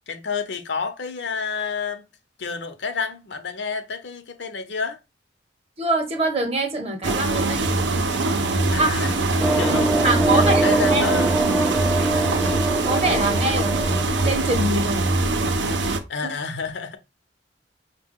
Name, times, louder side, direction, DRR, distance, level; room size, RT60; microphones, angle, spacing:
voice 1, 0.1-2.0 2.4-5.0 8.7-9.1 9.6-10.0 10.3-11.3 16.1-17.0, left 5 dB, 70° left, 0.7 m, -29 dB
voice 2, 5.8-7.6 8.8-9.1 10.0-10.6 10.9-11.0 12.8-15.1, right 2 dB, 35° right, 0.8 m, -24 dB
sound 1, 7.0-16.0, right 2 dB, 80° right, 0.6 m, -23 dB
sound 2, 9.4-14.7, right 2 dB, 5° right, 0.3 m, -23 dB
5.6 x 2.2 x 3.6 m
head